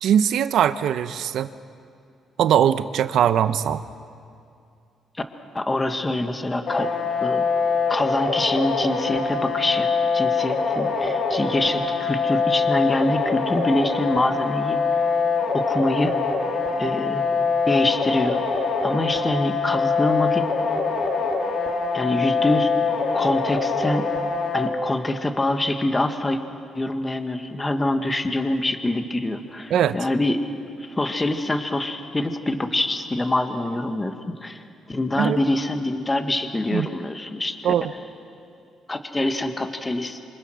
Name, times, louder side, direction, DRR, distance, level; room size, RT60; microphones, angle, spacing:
voice 1, 0.0-1.5 2.4-3.8 29.7-30.0 35.2-35.4 36.7-36.9 37.6-37.9, right 9 dB, 75° right, 12 dB, 0.8 m, -20 dB
voice 2, 5.5-6.9 7.2-7.4 7.9-15.0 15.5-16.2 16.8-17.3 17.7-18.4 18.8-20.5 21.9-22.7 23.1-24.1 24.5-26.4 26.7-30.4 30.8-34.6 34.9-37.7 38.9-40.3, left 1 dB, 20° left, 7 dB, 1.6 m, -25 dB
sound 1, 6.7-24.7, left 4 dB, 55° left, 2.6 m, -24 dB
27.0 x 25.5 x 6.3 m, 2.4 s
cardioid pair, 90°, 0 cm